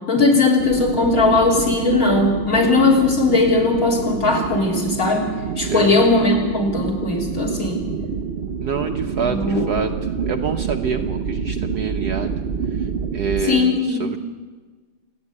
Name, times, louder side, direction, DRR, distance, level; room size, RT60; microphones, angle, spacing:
voice 1, 0.1-5.2 5.6-7.8 9.2-9.7 13.4-14.1, left 3 dB, 40° left, 1 dB, 4.0 m, -18 dB
sound 1, 0.6-13.5, right 6 dB, 85° right, 0.5 m, -27 dB
voice 2, 5.6-5.9 8.6-9.9 10.3-12.4 13.1-14.2, right 6 dB, 60° right, 5 dB, 1.2 m, -26 dB
28.0 x 9.6 x 9.7 m, 1.4 s
omnidirectional pair, 2.3 m